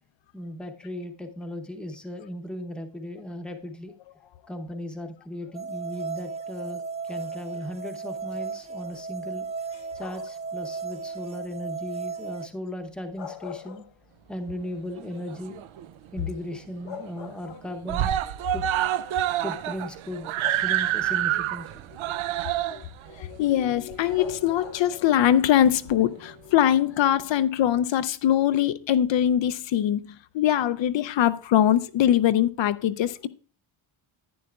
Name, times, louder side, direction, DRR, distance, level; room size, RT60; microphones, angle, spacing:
voice 1, 0.3-3.9 4.5-9.4 9.9-13.8 14.3-15.6 16.1-18.1 18.5-18.6 19.4-21.9, left 1 dB, ahead, 0.8 m, -37 dB
sound 1, 5.5-12.5, right 5 dB, 15° right, 0.3 m, -35 dB
sound 2, 10.0-10.5 13.0-14.4 14.8-14.9 16.4-16.5 16.9-18.0 19.0-19.1 20.4-21.1 24.2-25.0, left 7 dB, 90° left, 1.9 m, -42 dB
Screaming, 15.0-15.9 16.2-16.3 16.6-16.7 17.0-17.5 17.8-24.7 25.5-25.6, right 12 dB, 85° right, 0.5 m, -28 dB
voice 2, 22.4-33.3, left 11 dB, 70° left, 0.5 m, -23 dB
11.0 x 9.5 x 2.3 m
wide cardioid pair, 175°, 47 cm